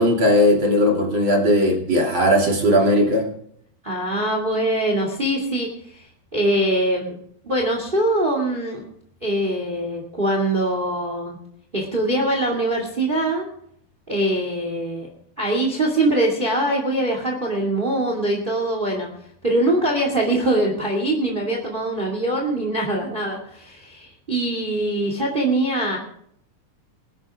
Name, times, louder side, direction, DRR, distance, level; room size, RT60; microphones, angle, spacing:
voice 1, 0.0-3.3, equal, 40° right, -1 dB, 3.4 m, -18 dB
voice 2, 3.8-6.1 6.3-7.2 7.4-8.8 9.2-11.4 11.7-13.5 14.1-15.1 15.4-19.1 19.4-26.0, right 1 dB, 20° right, 2 dB, 2.3 m, -23 dB
21.5 x 11.0 x 3.6 m, 0.67 s
omnidirectional pair, 3.5 m